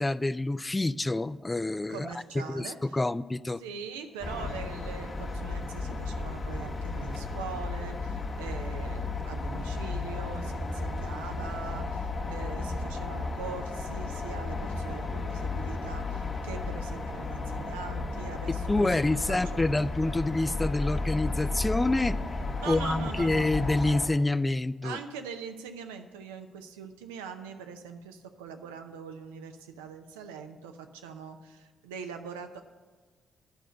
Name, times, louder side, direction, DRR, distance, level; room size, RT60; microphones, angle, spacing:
voice 1, 0.0-2.1 2.5-3.6 18.5-22.2 22.7-25.0, left 2 dB, 20° left, 17 dB, 0.3 m, -27 dB
voice 2, 1.9-3.0 3.6-19.6 22.6-23.5 24.8-32.6, right 6 dB, 85° right, 6 dB, 0.6 m, -42 dB
sound 1, 4.2-24.1, left 3 dB, 50° left, 1.4 m, -34 dB
10.5 x 5.0 x 7.7 m, 1.4 s
hypercardioid pair, 45°, 0 cm